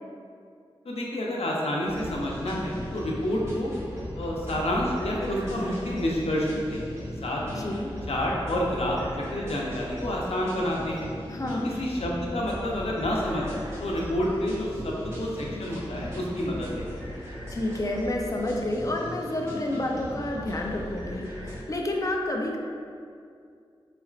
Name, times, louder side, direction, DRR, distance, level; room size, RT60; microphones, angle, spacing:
voice 1, 0.8-3.7 4.2-7.7 8.1-11.1 11.5-16.9, left 1 dB, 80° left, -3 dB, 0.7 m, -29 dB
sound 1, 1.8-21.6, equal, 25° right, 1.3 m, -38 dB
voice 2, 7.6-7.9 11.3-11.7 17.5-22.6, left 1 dB, 35° left, 0 dB, 0.5 m, -29 dB
4.2 x 4.0 x 2.4 m, 2.3 s
wide cardioid pair, 85°, 10 cm